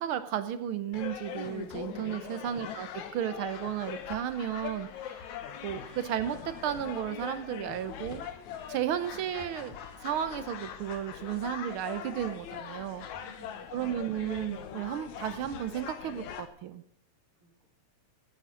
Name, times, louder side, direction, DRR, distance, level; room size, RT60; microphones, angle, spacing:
voice 1, 0.0-5.2 5.6-8.2 8.7-13.1 13.7-16.8, right 10 dB, 85° right, 11 dB, 1.2 m, -34 dB
sound 1, 0.9-16.5, left 8 dB, 75° left, 2.6 m, -42 dB
sound 2, 2.0-2.9 3.4-3.9 4.5-6.0 6.5-6.9 7.2-7.6 8.6-9.1 9.7-10.1, left 2 dB, 35° left, 3.4 m, -60 dB
voice 2, 2.2-2.6 13.2-14.2 17.4-17.7, right 2 dB, 50° right, -4 dB, 3.5 m, -56 dB
14.5 x 10.0 x 6.2 m, 0.68 s
omnidirectional pair, 3.4 m